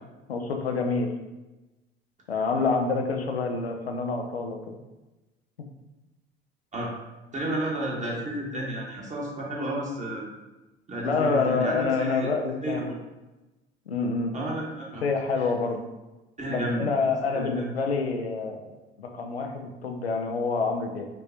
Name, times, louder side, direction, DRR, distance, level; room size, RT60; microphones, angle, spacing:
voice 1, 0.3-1.1 2.3-4.8 11.0-12.8 13.9-14.3 15.0-15.8 16.5-18.7 19.0-21.1, left 4 dB, 90° left, 4 dB, 0.5 m, -27 dB
voice 2, 7.3-10.2 10.9-12.3 12.6-13.0 14.3-15.0 16.4-16.9 17.3-17.6, right 1 dB, 25° right, -3 dB, 1.4 m, -31 dB
5.1 x 3.2 x 2.8 m, 1.1 s
figure-of-eight pair, 65°, 30 cm